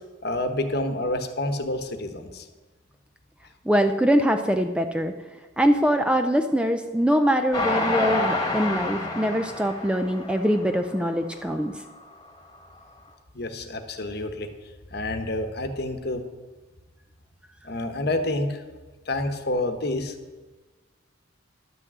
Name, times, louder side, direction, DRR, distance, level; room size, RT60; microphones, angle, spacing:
voice 1, 0.2-2.4 13.3-14.5 14.9-16.2 17.6-18.6 19.1-20.1, left 2 dB, 50° left, 7 dB, 1.1 m, -28 dB
voice 2, 3.7-5.1 5.6-11.7, equal, 5° right, 6 dB, 0.4 m, -23 dB
Train, 7.5-11.0 11.5-11.6 11.9-12.0, left 2 dB, 20° left, 1.6 m, -28 dB
11.5 x 6.2 x 8.0 m, 1.3 s
head